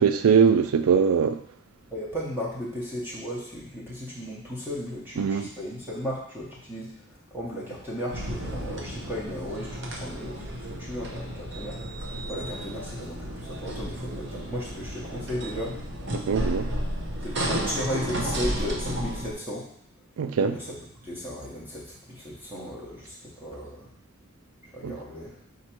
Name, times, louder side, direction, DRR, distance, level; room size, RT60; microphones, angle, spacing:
voice 1, 0.0-1.4 5.2-5.5 16.1-16.7 20.2-20.6 24.8-24.9, right 6 dB, 85° right, 0.3 m, -21 dB
voice 2, 1.9-11.8 12.3-15.7 17.2-19.7 20.4-23.9 24.7-25.4, equal, 10° right, 0.8 m, -35 dB
sound 1, 8.1-19.3, equal, 55° right, 0.7 m, -33 dB
4.4 x 2.5 x 4.3 m
head